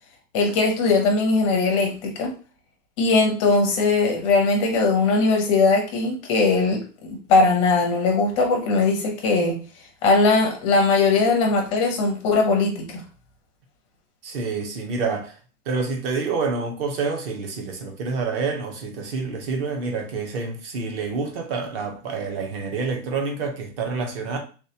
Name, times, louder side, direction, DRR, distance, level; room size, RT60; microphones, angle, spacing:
voice 1, 0.3-2.3 3.0-9.6 10.0-13.0, left 3 dB, 20° left, 0.5 m, -20 dB
voice 2, 14.2-15.3 15.7-24.4, right 4 dB, 35° right, 0.9 m, -28 dB
3.3 x 3.1 x 2.8 m
hypercardioid pair, 160°, 47 cm